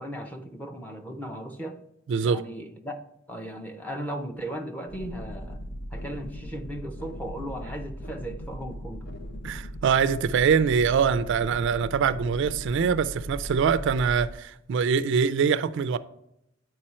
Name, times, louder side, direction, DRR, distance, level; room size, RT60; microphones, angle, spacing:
voice 1, 0.0-1.8 2.2-3.0 3.3-5.6 5.9-9.0, right 1 dB, 10° left, 0.7 m, -36 dB
voice 2, 2.1-2.4 9.4-16.0, right 6 dB, 65° right, 0.3 m, -24 dB
sound 1, 4.9-14.3, equal, 55° left, 0.8 m, -38 dB
8.6 x 4.7 x 4.3 m
head